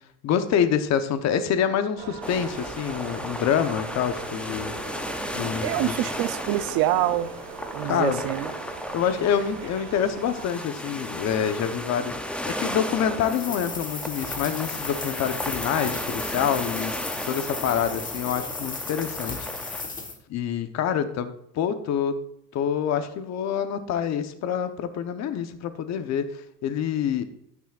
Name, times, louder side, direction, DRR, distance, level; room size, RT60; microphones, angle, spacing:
voice 1, 0.2-4.7 5.3-6.0 7.8-8.2 8.9-16.9 17.2-19.5 20.3-22.2 22.5-27.2, left 8 dB, 35° left, 9 dB, 1.0 m, -26 dB
sound 1, 2.0-10.5, right 7 dB, 75° right, 2.4 m, -41 dB
sound 2, 2.2-19.8, equal, 5° left, 0.5 m, -35 dB
voice 2, 5.6-7.3 7.7-8.5, right 13 dB, 55° right, 12 dB, 0.7 m, -25 dB
sound 3, 13.2-20.2, left 4 dB, 20° left, 1.3 m, -35 dB
11.5 x 9.5 x 2.5 m, 0.75 s
supercardioid pair, 135°, 44 cm